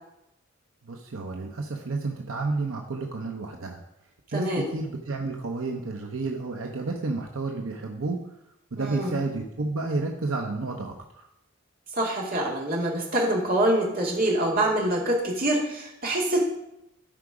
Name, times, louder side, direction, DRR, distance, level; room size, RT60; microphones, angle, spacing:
voice 1, 0.8-3.8 4.3-8.2 8.7-11.3, right 3 dB, 80° right, 2 dB, 0.9 m, -31 dB
voice 2, 4.3-4.7 8.8-9.2 11.9-16.5, right 1 dB, 45° right, -2 dB, 2.3 m, -25 dB
12.5 x 4.9 x 4.9 m, 0.85 s
head